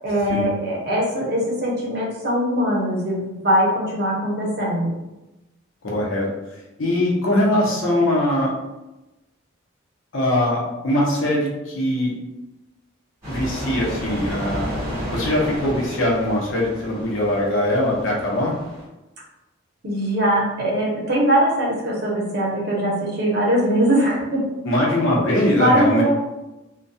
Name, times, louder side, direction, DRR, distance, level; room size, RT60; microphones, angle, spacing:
voice 1, 0.0-4.9 19.8-24.5 25.5-26.1, right 1 dB, 50° right, -4 dB, 0.7 m, -21 dB
voice 2, 5.9-6.3 6.8-8.5 10.1-12.1 13.3-14.7 15.1-18.5 24.6-26.0, left 1 dB, 75° left, -3 dB, 0.7 m, -21 dB
sound 1, 13.2-18.8, equal, 15° right, 1.3 m, -31 dB
2.2 x 2.2 x 2.6 m, 1.0 s
head